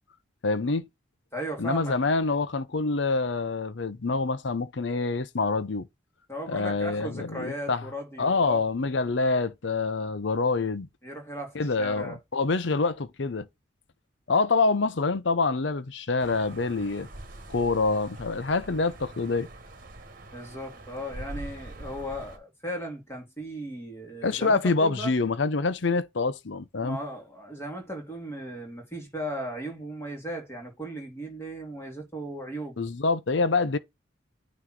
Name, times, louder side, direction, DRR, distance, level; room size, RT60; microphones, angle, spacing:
voice 1, 0.4-0.9 1.6-5.9 6.5-7.9 8.2-10.9 11.5-13.5 14.3-17.1 17.5-19.5 24.2-27.0 32.8-33.8, left 3 dB, 65° left, 0.7 m, -26 dB
voice 2, 1.3-2.0 6.3-8.6 11.0-12.2 20.3-25.1 26.8-32.9, equal, 15° left, 2.6 m, -37 dB
sound 1, 16.2-22.4, right 1 dB, 45° right, 1.5 m, -44 dB
9.1 x 3.1 x 3.7 m
head